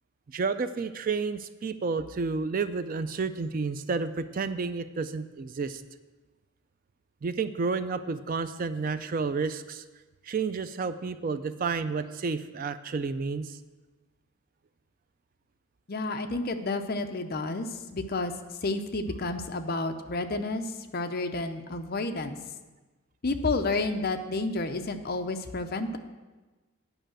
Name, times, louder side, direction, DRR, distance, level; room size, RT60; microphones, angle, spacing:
voice 1, 0.3-5.8 7.2-9.8 10.2-13.6, right 4 dB, 40° right, 11 dB, 0.3 m, -31 dB
voice 2, 15.9-18.3 18.6-22.4 23.2-26.0, left 2 dB, 45° left, 6 dB, 0.6 m, -30 dB
9.0 x 5.6 x 7.5 m, 1.2 s
head